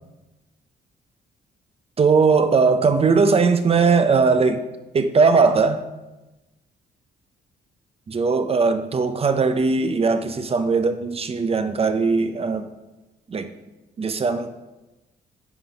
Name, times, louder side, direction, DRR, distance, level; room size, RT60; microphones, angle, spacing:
voice 1, 2.0-4.6 4.9-5.8 8.1-12.7 13.3-13.5 14.0-14.5, right 4 dB, 35° right, 9 dB, 0.6 m, -19 dB
10.5 x 4.0 x 5.1 m, 1.1 s
cardioid pair, 100°, 17 cm